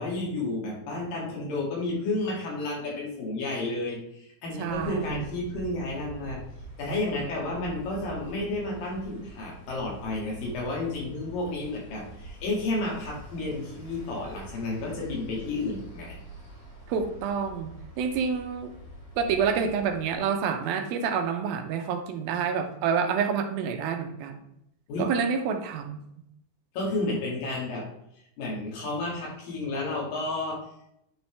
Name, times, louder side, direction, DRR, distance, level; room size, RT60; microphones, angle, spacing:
voice 1, 0.0-6.4 6.8-16.2 24.9-25.1 26.7-27.9 28.4-30.6, left 2 dB, 70° left, -2 dB, 3.8 m, -31 dB
voice 2, 4.6-5.1 16.9-18.7 19.2-24.4 25.0-26.0, right 6 dB, 80° right, 6 dB, 2.5 m, -28 dB
sound 1, 4.7-20.2, right 2 dB, 25° left, 1.4 m, -45 dB
9.1 x 5.8 x 3.4 m, 0.79 s
omnidirectional pair, 4.3 m